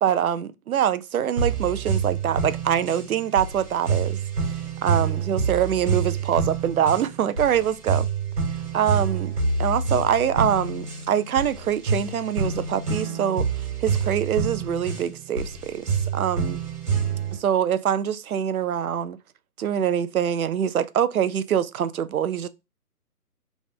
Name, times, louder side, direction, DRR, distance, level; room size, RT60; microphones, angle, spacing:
voice 1, 0.0-8.1 8.7-9.3 9.6-16.6 17.3-19.2 19.6-22.5, right 9 dB, 65° right, 0.5 m, -24 dB
sound 1, 1.4-17.4, right 5 dB, 85° right, 1.6 m, -27 dB
3.4 x 2.4 x 4.0 m
hypercardioid pair, 170°, 46 cm